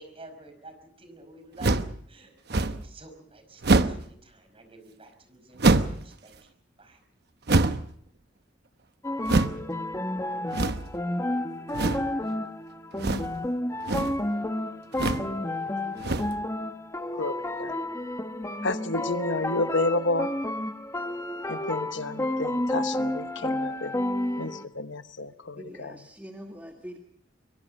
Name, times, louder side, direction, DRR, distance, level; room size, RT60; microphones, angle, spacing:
voice 1, 0.0-7.0, right 2 dB, 30° right, 7 dB, 5.1 m, -50 dB
sound 1, 1.6-2.0 2.5-2.9 3.6-4.1 5.6-6.0 7.5-7.9 9.2-9.6 10.5-11.0 11.7-12.1 13.0-13.4 13.7-14.2 14.9-15.3 16.0-16.4, right 2 dB, 60° right, 1.0 m, -24 dB
sound 2, 9.0-24.7, left 1 dB, 15° left, 1.3 m, -31 dB
voice 2, 17.1-17.8 18.6-20.3 21.5-24.0 24.4-25.9, left 2 dB, 80° left, 10 dB, 1.1 m, -30 dB
voice 3, 25.6-27.0, equal, 10° right, 1 dB, 2.0 m, -43 dB
24.5 x 23.5 x 5.4 m, 0.64 s
head